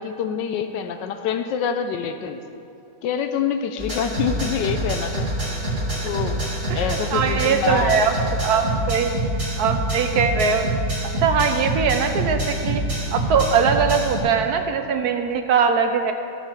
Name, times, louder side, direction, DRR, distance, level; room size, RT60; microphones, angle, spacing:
voice 1, 0.0-2.4 3.0-5.3 6.0-6.4 6.7-8.0, left 7 dB, 80° left, 8 dB, 1.2 m, -26 dB
sound 1, 3.8-14.2, right 1 dB, 40° right, 3.2 m, -26 dB
voice 2, 6.7-8.1 8.4-9.1 9.6-12.8 13.1-16.1, right 6 dB, 70° right, 6 dB, 1.0 m, -21 dB
14.5 x 6.6 x 4.5 m, 2.7 s
omnidirectional pair, 1.9 m